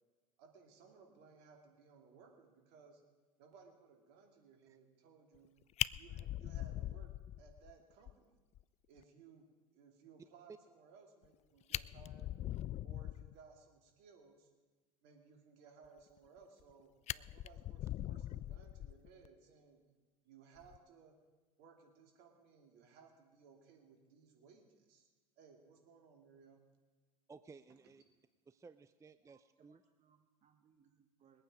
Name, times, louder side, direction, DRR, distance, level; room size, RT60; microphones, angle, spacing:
voice 1, 0.4-3.0 3.4-5.5 5.9-7.1 7.4-8.4 8.9-9.4 9.7-12.3 12.8-14.5 15.0-19.8 20.2-21.2 21.6-25.1 25.4-26.6, right 5 dB, 65° right, 3 dB, 3.0 m, -62 dB
Fire, 5.3-5.5 5.8-7.7 8.1-8.2 8.5-8.6 9.0-9.1 11.2-11.3 11.6-13.4 16.2-16.7 17.1-19.3 20.6-20.8, left 13 dB, 40° left, 0.4 m, -41 dB
voice 2, 27.3-28.0 28.5-29.8, right 4 dB, 15° right, 12 dB, 0.5 m, -57 dB
voice 3, 29.2-31.4, right 7 dB, 40° right, 5 dB, 1.3 m, -71 dB
22.0 x 8.8 x 5.1 m, 1.3 s
hypercardioid pair, 80°, 18 cm